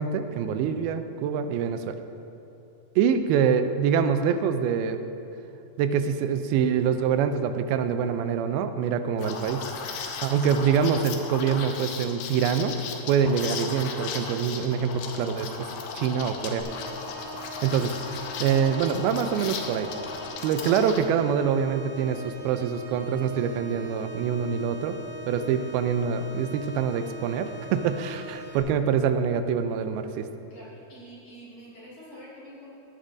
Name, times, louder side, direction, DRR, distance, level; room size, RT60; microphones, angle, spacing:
voice 1, 0.0-2.0 3.0-5.0 5.8-9.7 10.2-12.8 13.1-15.7 15.9-16.6 17.6-18.0 18.4-19.9 20.4-25.0 25.3-30.3, right 7 dB, 90° right, 9 dB, 2.4 m, -25 dB
Liquid, 9.2-21.1, left 5 dB, 85° left, 2.7 m, -36 dB
sound 1, 16.6-28.6, right 1 dB, 70° right, 2.9 m, -42 dB
voice 2, 30.5-32.8, equal, 40° left, -8 dB, 2.7 m, -46 dB
15.0 x 9.6 x 2.6 m, 2.8 s
omnidirectional pair, 4.3 m